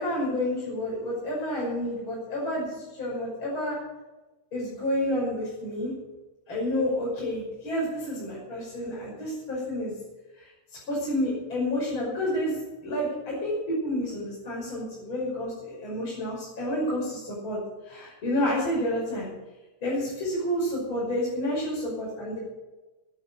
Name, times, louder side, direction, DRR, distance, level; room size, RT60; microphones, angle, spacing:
voice 1, 0.0-3.8 4.5-5.9 6.5-9.9 10.4-17.6 17.8-19.3 19.8-22.4, left 1 dB, 25° left, -6 dB, 6.4 m, -29 dB
17.5 x 11.0 x 6.5 m, 1.1 s
omnidirectional pair, 5.3 m